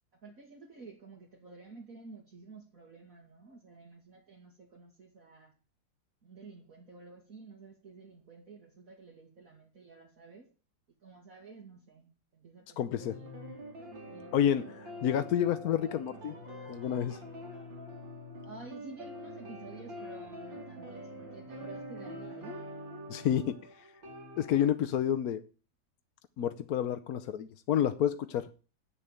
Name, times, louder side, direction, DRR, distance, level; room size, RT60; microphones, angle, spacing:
voice 1, 0.2-5.5 6.2-10.5 11.0-13.3 14.1-14.3 18.4-22.6, right 4 dB, 45° right, 2.5 m, -51 dB
voice 2, 12.8-13.2 14.3-16.3 16.7-17.2 23.1-23.6 24.4-25.4 26.4-28.5, left 10 dB, 60° left, 1.1 m, -29 dB
sound 1, 13.0-24.7, equal, 75° right, 3.4 m, -45 dB
9.1 x 6.8 x 8.9 m
omnidirectional pair, 2.1 m